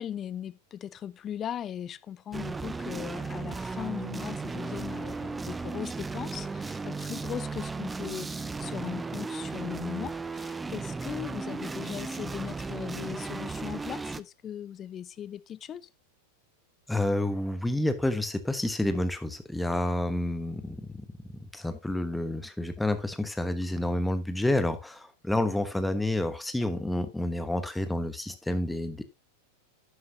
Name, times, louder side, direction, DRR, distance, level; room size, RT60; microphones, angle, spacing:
voice 1, 0.0-15.9, left 9 dB, 25° left, 0.7 m, -38 dB
sound 1, 2.3-14.2, right 4 dB, 10° right, 0.5 m, -35 dB
voice 2, 16.9-21.1 21.5-29.0, left 1 dB, 5° left, 1.1 m, -29 dB
11.5 x 9.6 x 2.6 m
figure-of-eight pair, 90°, 0 cm